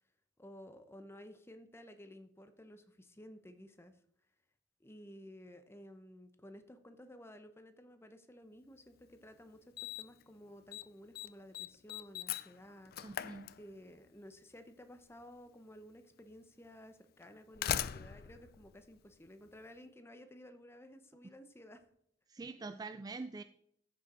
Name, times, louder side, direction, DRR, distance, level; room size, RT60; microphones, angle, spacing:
voice 1, 0.4-4.0 4.8-13.1 13.6-21.8, equal, 15° left, 9 dB, 0.8 m, -54 dB
Slam, 9.0-9.1 9.8-10.2 10.5-10.9 11.2-14.1 15.2-15.3 16.2-16.3 17.2-19.6, left 10 dB, 50° left, 0.4 m, -40 dB
voice 2, 13.0-13.5 22.3-23.4, right 3 dB, 20° right, 11 dB, 0.3 m, -44 dB
14.0 x 6.3 x 4.3 m, 0.70 s
head